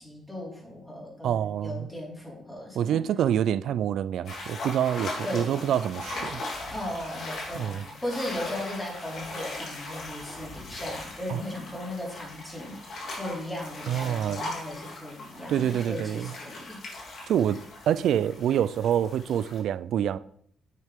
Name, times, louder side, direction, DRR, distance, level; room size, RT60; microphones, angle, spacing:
voice 1, 0.0-3.0 5.2-5.6 6.7-16.8, left 1 dB, 10° left, 4.6 m, -37 dB
voice 2, 1.2-1.9 2.8-6.4 7.5-7.9 11.3-11.4 13.9-14.4 15.5-16.3 17.3-20.2, right 10 dB, 70° right, 0.4 m, -26 dB
sound 1, 4.3-19.6, left 2 dB, 65° left, 3.6 m, -39 dB
9.4 x 7.8 x 3.7 m
cardioid pair, 90°, 0 cm